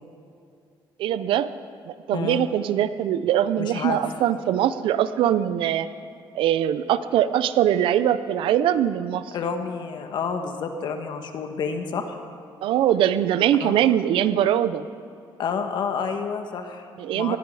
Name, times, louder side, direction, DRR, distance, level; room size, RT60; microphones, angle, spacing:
voice 1, 1.0-1.5 1.9-5.9 6.3-9.3 12.6-14.8 17.0-17.4, right 10 dB, 80° right, 14 dB, 0.6 m, -22 dB
voice 2, 2.1-2.5 3.6-4.0 9.3-12.2 13.6-13.7 15.4-16.9 17.1-17.4, left 6 dB, 60° left, 6 dB, 1.6 m, -29 dB
19.5 x 14.5 x 4.9 m, 2.4 s
cardioid pair, 115°, 9 cm